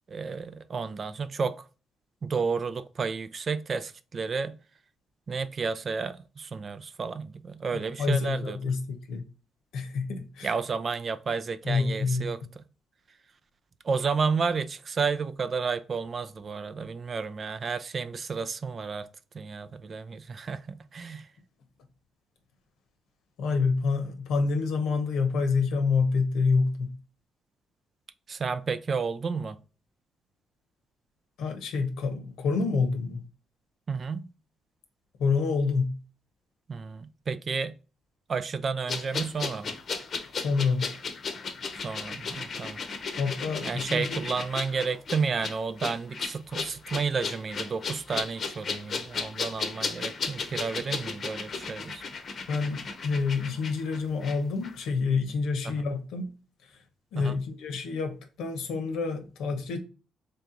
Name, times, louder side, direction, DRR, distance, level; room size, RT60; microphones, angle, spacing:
voice 1, 0.1-1.7 2.2-4.6 5.3-8.6 10.4-12.6 13.8-19.1 19.3-21.3 28.3-29.6 33.9-34.3 36.7-37.7 38.3-39.8 41.8-42.8 43.6-52.0 55.6-55.9 57.1-57.4, right 5 dB, 45° right, 0.4 m, -31 dB
voice 2, 7.7-9.2 9.7-10.5 11.6-12.3 23.4-26.9 31.4-33.2 35.2-36.0 40.4-40.9 43.2-44.2 52.5-56.3 57.1-59.8, left 4 dB, 85° left, 0.9 m, -27 dB
sound 1, 38.9-54.4 54.6-54.8, left 5 dB, 50° left, 0.8 m, -35 dB
3.4 x 2.9 x 3.8 m
cardioid pair, 90°, 0 cm